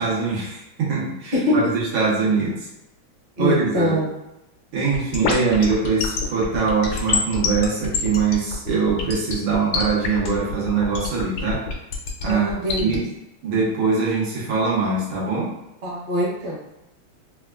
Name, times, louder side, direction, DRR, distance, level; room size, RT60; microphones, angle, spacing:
voice 1, 0.0-2.6 3.4-4.0 4.7-11.6 12.2-13.1 13.4-15.5, right 4 dB, 85° right, -6 dB, 1.8 m, -22 dB
voice 2, 1.3-1.7 3.4-4.1 12.2-13.0 15.8-16.6, left 1 dB, 40° right, -5 dB, 0.7 m, -23 dB
sound 1, 4.9-13.0, left 6 dB, 75° left, 1.3 m, -25 dB
4.0 x 2.3 x 2.3 m, 0.90 s
omnidirectional pair, 2.2 m